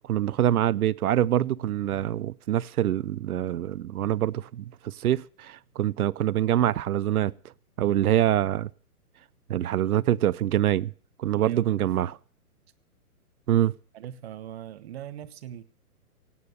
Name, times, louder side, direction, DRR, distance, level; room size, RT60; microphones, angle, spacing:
voice 1, 0.1-7.3 7.8-8.7 9.5-10.9 11.2-12.2 13.5-13.7, right 12 dB, 75° right, 0.6 m, -25 dB
voice 2, 11.3-11.9 13.9-15.6, right 11 dB, 45° right, 1.1 m, -40 dB
17.0 x 8.6 x 6.6 m
hypercardioid pair, 145°, 45 cm